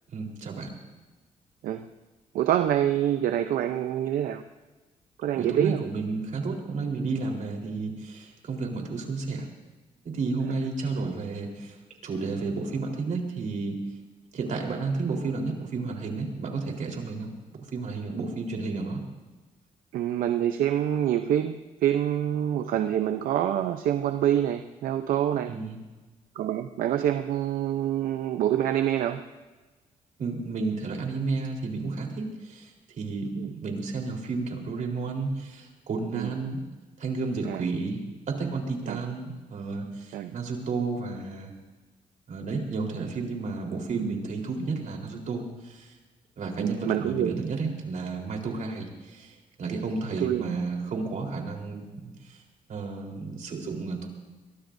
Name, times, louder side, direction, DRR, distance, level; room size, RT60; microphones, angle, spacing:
voice 1, 0.1-0.7 5.3-9.5 10.0-11.8 12.0-13.9 14.3-17.3 17.7-19.0 25.5-25.8 30.2-32.7 33.0-36.6 37.0-41.5 42.3-45.9 46.4-52.4 52.7-54.1, right 3 dB, 65° right, 1 dB, 4.0 m, -32 dB
voice 2, 2.3-4.4 5.2-5.8 19.9-25.5 26.4-29.2 33.4-33.5 36.1-36.3 37.5-37.6 38.9-39.0 40.1-40.3 44.0-44.1 46.6-47.3 50.2-50.4, right 11 dB, 80° right, 8 dB, 0.7 m, -26 dB
22.5 x 22.5 x 2.7 m, 1.2 s
cardioid pair, 70°, 14 cm